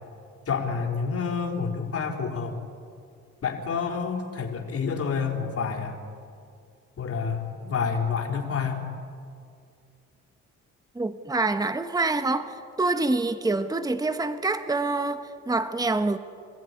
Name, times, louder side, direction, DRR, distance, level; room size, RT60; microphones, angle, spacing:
voice 1, 0.5-2.6 3.4-6.0 7.0-8.9, left 5 dB, 50° left, 1 dB, 4.4 m, -28 dB
voice 2, 10.9-16.2, right 3 dB, 10° right, 10 dB, 1.2 m, -26 dB
28.5 x 15.0 x 9.9 m, 2.4 s
cardioid pair, 90°, 30 cm